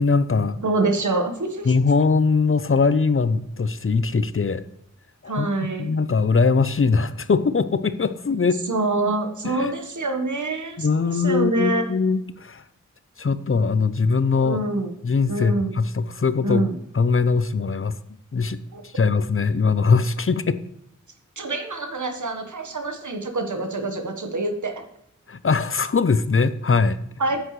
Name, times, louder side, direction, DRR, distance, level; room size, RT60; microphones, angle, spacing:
voice 1, 0.0-0.6 1.6-4.6 5.2-8.6 9.4-9.7 10.8-12.6 13.2-14.6 15.0-16.6 16.9-18.0 18.3-20.6 25.3-27.0, left 4 dB, 45° left, 14 dB, 0.6 m, -21 dB
voice 2, 0.6-1.7 5.3-5.9 8.7-11.9 14.4-14.9 15.3-15.8 16.4-16.7 18.7-18.8 21.4-24.8 27.2-27.4, right 2 dB, 70° right, 5 dB, 1.4 m, -26 dB
9.9 x 8.1 x 3.2 m, 0.76 s
cardioid pair, 40°, 31 cm